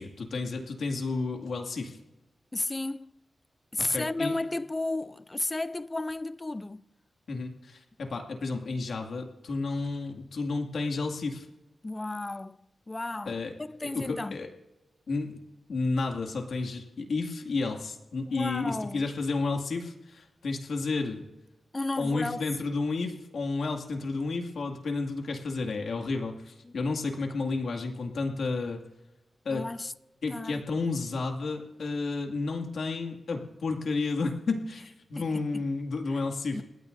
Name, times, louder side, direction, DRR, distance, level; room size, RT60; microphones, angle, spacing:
voice 1, 0.0-2.0 3.9-4.3 7.3-11.5 13.3-13.5 13.8-14.5 15.1-15.4 15.7-21.3 22.0-28.8 29.4-29.6 30.2-36.6, left 3 dB, 75° left, 2.1 m, -31 dB
voice 2, 2.5-3.1 3.7-6.8 11.8-14.4 18.3-19.1 21.7-22.4 26.6-26.7 29.5-29.9 30.3-30.6 35.2-35.6 36.5-36.6, left 2 dB, 20° left, 0.5 m, -33 dB
30.0 x 16.0 x 2.6 m
wide cardioid pair, 135°, 0 cm